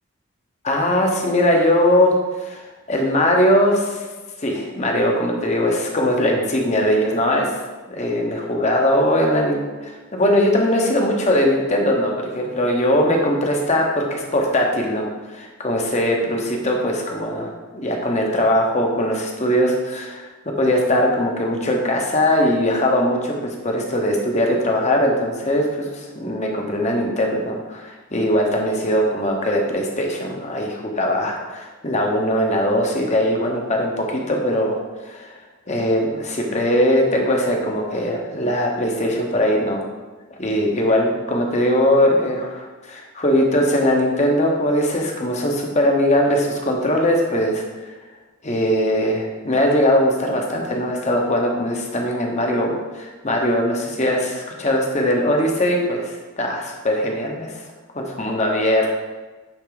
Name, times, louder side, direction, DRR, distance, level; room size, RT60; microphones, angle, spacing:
voice 1, 0.6-2.6 2.9-4.1 4.4-7.5 7.9-20.3 20.6-34.8 35.0-35.3 35.7-39.8 40.4-47.6 48.4-57.6 57.9-58.9, left 1 dB, 30° left, 1 dB, 1.0 m, -20 dB
9.0 x 3.9 x 3.9 m, 1.2 s
head